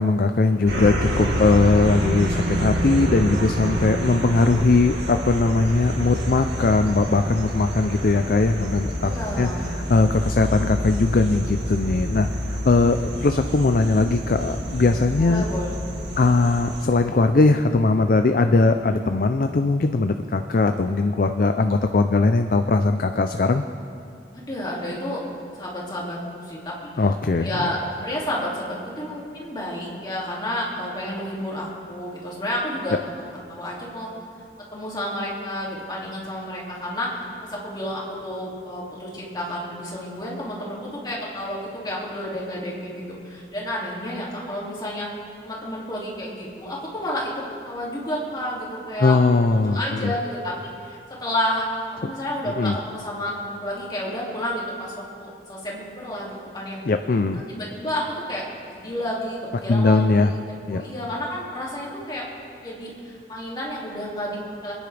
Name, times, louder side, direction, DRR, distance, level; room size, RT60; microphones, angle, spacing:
voice 1, 0.0-9.1 9.4-12.3 12.7-15.4 16.2-23.6 27.0-27.5 49.0-50.1 52.6-52.8 56.8-57.4 59.7-60.3 60.7-60.8, left 3 dB, 50° left, 7 dB, 0.4 m, -20 dB
sound 1, 0.7-16.9, equal, 70° right, 2.0 m, -28 dB
voice 2, 9.0-9.7 15.2-15.8 24.3-25.2 25.5-27.0 27.4-34.1 34.7-45.1 45.4-47.3 47.6-49.2 49.5-50.5 50.8-51.6 51.9-56.8 57.3-58.0 58.3-58.4 58.8-60.3 60.7-62.3 62.6-64.7, left 1 dB, 25° left, -4 dB, 2.4 m, -31 dB
24.5 x 10.0 x 3.4 m, 2.4 s
head